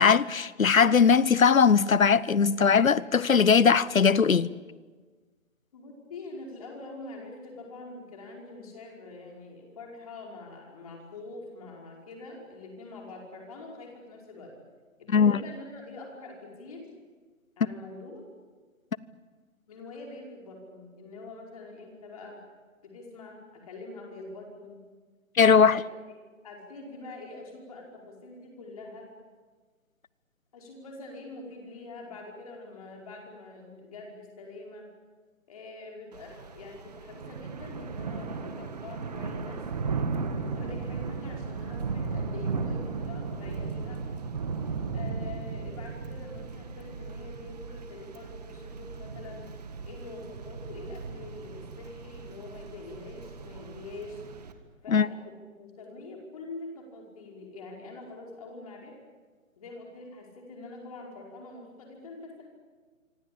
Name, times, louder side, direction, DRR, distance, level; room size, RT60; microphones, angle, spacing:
voice 1, 0.0-4.5 15.1-15.4 25.4-25.8 54.9-55.1, left 6 dB, 80° left, 1.1 m, -20 dB
voice 2, 5.7-14.5 15.0-16.9 17.6-18.3 19.7-22.4 22.8-24.8 25.4-25.9 26.4-29.1 30.5-34.9 35.5-39.7 40.3-44.0 44.9-49.5 49.8-54.2 54.8-58.9 59.6-62.5, left 2 dB, 25° left, 5.2 m, -44 dB
Thunder / Rain, 36.1-54.5, right 4 dB, 30° right, 1.8 m, -36 dB
26.0 x 25.0 x 8.7 m
hypercardioid pair, 165°, 40 cm